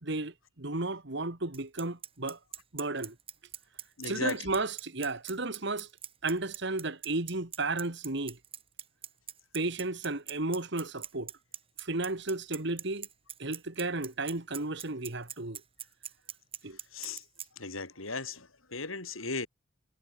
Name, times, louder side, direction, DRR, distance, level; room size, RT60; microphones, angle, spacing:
voice 1, 0.0-2.4 2.7-3.2 4.1-5.9 6.2-8.4 9.5-11.3 11.8-13.1 13.4-15.6 16.6-16.8, right 2 dB, 60° right, 2.0 m, -33 dB
Bicycle, 1.5-17.5, right 9 dB, 30° right, 6.1 m, -42 dB
voice 2, 4.0-4.6 16.9-17.2 17.6-19.5, left 3 dB, 85° left, 6.5 m, -37 dB
head